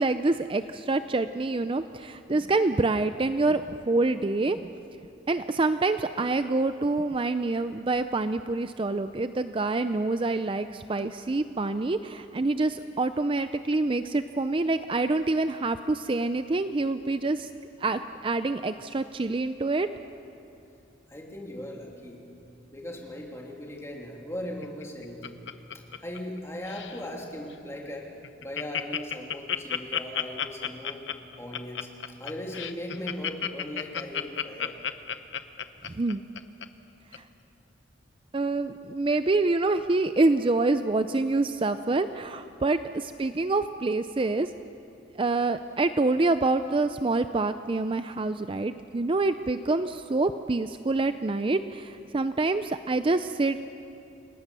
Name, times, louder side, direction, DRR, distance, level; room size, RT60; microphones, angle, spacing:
voice 1, 0.0-4.7 5.3-17.5 17.8-19.9 35.9-36.2 37.1-37.2 38.3-44.5 45.2-53.6, right 3 dB, 30° right, 10 dB, 0.5 m, -26 dB
voice 2, 21.1-22.2 22.7-25.4 25.7-28.1 28.4-31.0 31.4-34.7, left 1 dB, 15° left, -1 dB, 3.1 m, -38 dB
Laughter, 24.6-26.4 26.6-27.0 27.5-27.6 27.9-28.0 28.2-36.6 37.1-37.2, left 9 dB, 70° left, 0.9 m, -32 dB
29.5 x 19.0 x 6.9 m, 2.7 s
head